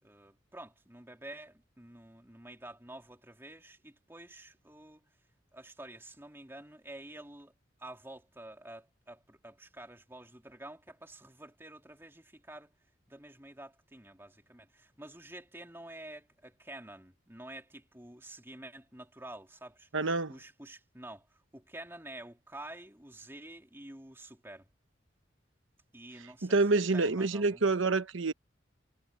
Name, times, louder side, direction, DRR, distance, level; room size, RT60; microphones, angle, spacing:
voice 1, 0.0-5.0 5.5-7.5 7.8-12.7 13.1-19.9 20.3-24.7 25.9-27.6, right 1 dB, 10° right, 3.2 m, -49 dB
voice 2, 19.9-20.3 26.4-28.3, right 3 dB, 80° right, 1.1 m, -27 dB
head